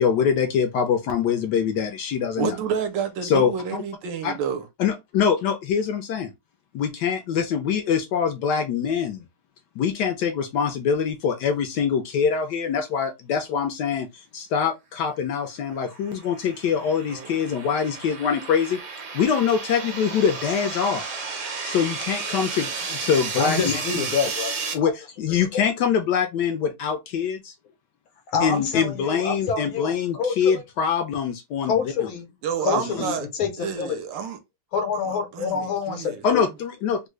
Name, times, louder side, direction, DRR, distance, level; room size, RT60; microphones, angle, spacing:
voice 1, 0.0-2.6 3.2-3.8 4.2-4.3 4.8-6.3 6.7-9.2 9.8-18.8 19.1-21.1 21.6-23.8 24.7-27.5 28.4-32.1 32.7-32.9 36.2-37.1, left 7 dB, 75° left, 1.0 m, -24 dB
voice 2, 2.4-4.6 17.1-17.4 32.4-33.3 33.6-34.4 35.1-36.2, right 7 dB, 75° right, 1.2 m, -29 dB
sound 1, 15.8-24.7, right 4 dB, 50° right, 1.0 m, -33 dB
voice 3, 23.4-24.6 25.3-25.5 28.3-30.6 31.6-32.3 32.6-33.1 33.4-34.0 34.7-36.4, left 6 dB, 90° left, 1.7 m, -27 dB
3.6 x 2.2 x 3.1 m
omnidirectional pair, 2.2 m